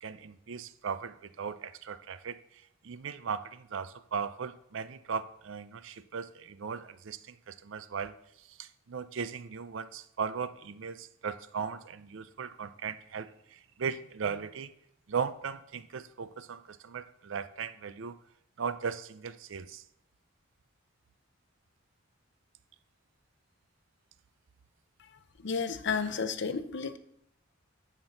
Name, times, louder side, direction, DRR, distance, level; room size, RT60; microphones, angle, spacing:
voice 1, 0.0-2.4 2.8-8.1 8.5-14.7 15.1-18.2 18.6-19.8, right 6 dB, 65° right, 13 dB, 0.5 m, -37 dB
voice 2, 25.4-27.0, left 5 dB, 60° left, 11 dB, 0.6 m, -32 dB
9.5 x 4.5 x 6.5 m, 0.75 s
head